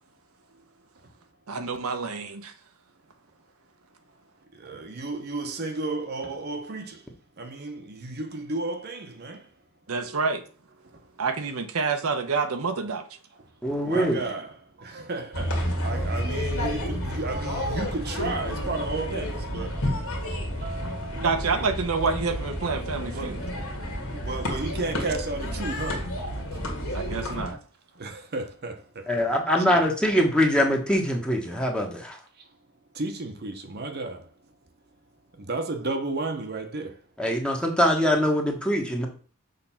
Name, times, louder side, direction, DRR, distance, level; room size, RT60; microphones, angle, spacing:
voice 1, 1.5-2.5 9.9-10.4 11.2-13.1 21.2-23.4 26.9-27.6, right 4 dB, 80° right, 0.8 m, -28 dB
voice 2, 4.5-9.6 9.9-10.2 10.8-11.2 13.4-21.7 23.0-27.1 27.9-29.1 29.6-29.7 32.3-32.6 32.9-34.5 35.3-37.1, right 3 dB, 45° right, 0.9 m, -34 dB
voice 3, 13.6-14.2 29.1-32.2 37.2-39.1, equal, 5° left, 1.1 m, -23 dB
sound 1, 15.3-27.5, equal, 70° left, 1.9 m, -30 dB
6.6 x 3.3 x 5.6 m
head